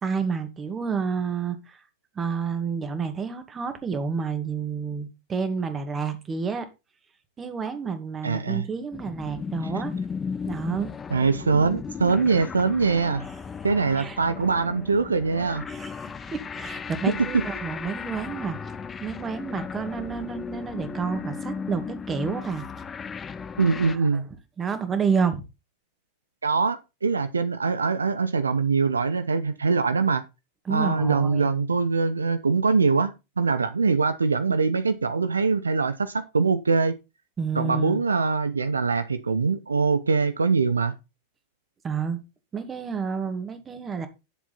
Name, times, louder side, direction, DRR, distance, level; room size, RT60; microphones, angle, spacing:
voice 1, 0.0-1.8 2.2-6.7 7.4-9.9 10.4-10.9 14.0-14.2 15.7-18.6 19.0-22.7 23.9-24.2 24.6-25.4 30.7-31.5 37.4-38.0 41.8-42.2 42.5-44.1, right 5 dB, 20° right, 2.2 m, -29 dB
voice 2, 8.2-8.6 11.1-13.3 13.6-15.7 17.1-17.4 23.6-24.3 26.4-30.2 30.7-36.9 37.5-40.9, right 4 dB, 75° right, 0.9 m, -23 dB
sound 1, 8.9-24.0, left 6 dB, 20° left, 0.8 m, -36 dB
11.0 x 7.4 x 4.3 m
figure-of-eight pair, 90°, 0 cm